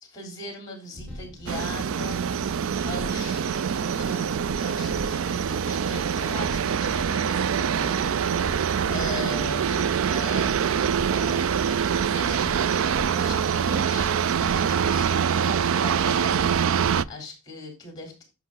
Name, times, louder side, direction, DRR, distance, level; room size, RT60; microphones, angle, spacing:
voice 1, 0.1-11.4 11.7-16.4 16.7-18.2, left 2 dB, 20° left, 4 dB, 3.6 m, -40 dB
sound 1, 0.8-17.0, left 1 dB, 5° left, 5.3 m, -42 dB
sound 2, 1.5-17.0, right 7 dB, 60° right, 0.4 m, -24 dB
11.5 x 5.7 x 3.9 m, 0.29 s
head